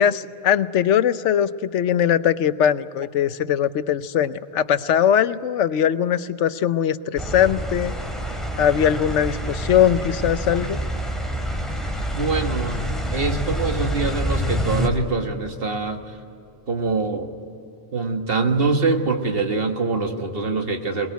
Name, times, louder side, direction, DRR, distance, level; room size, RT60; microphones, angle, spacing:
voice 1, 0.0-7.9 8.6-10.8, left 9 dB, 85° left, 14 dB, 1.1 m, -20 dB
sound 1, 7.2-14.9, equal, ahead, 2.4 m, -27 dB
voice 2, 12.1-12.9 13.1-16.0 16.7-17.3 17.9-21.1, right 4 dB, 55° right, 5 dB, 1.9 m, -24 dB
22.5 x 20.5 x 9.2 m, 2.8 s
omnidirectional pair, 1.2 m